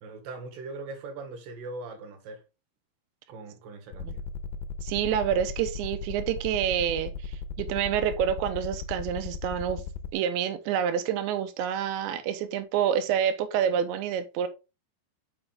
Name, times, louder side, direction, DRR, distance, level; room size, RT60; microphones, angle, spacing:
voice 1, 0.0-2.4 3.3-4.2, right 3 dB, 60° right, 3.0 m, -40 dB
sound 1, 3.9-10.1, left 6 dB, 85° left, 2.8 m, -36 dB
voice 2, 4.8-7.1 7.6-9.8 10.1-14.5, right 9 dB, 90° right, 3.1 m, -27 dB
6.7 x 6.0 x 3.5 m
omnidirectional pair, 5.0 m